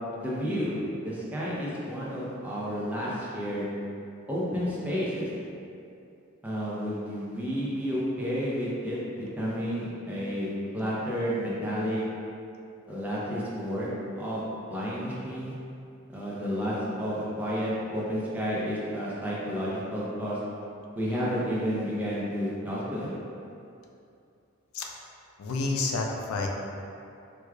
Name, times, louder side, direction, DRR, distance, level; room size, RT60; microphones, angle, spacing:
voice 1, 0.2-0.7 1.0-3.7 4.3-5.3 6.4-12.0 12.9-13.9 14.2-14.4 14.7-15.5 16.1-20.4 21.0-23.1, equal, 10° right, -8 dB, 0.6 m, -31 dB
voice 2, 25.4-26.5, left 3 dB, 85° left, 1 dB, 0.4 m, -29 dB
4.6 x 2.2 x 2.4 m, 2.6 s
head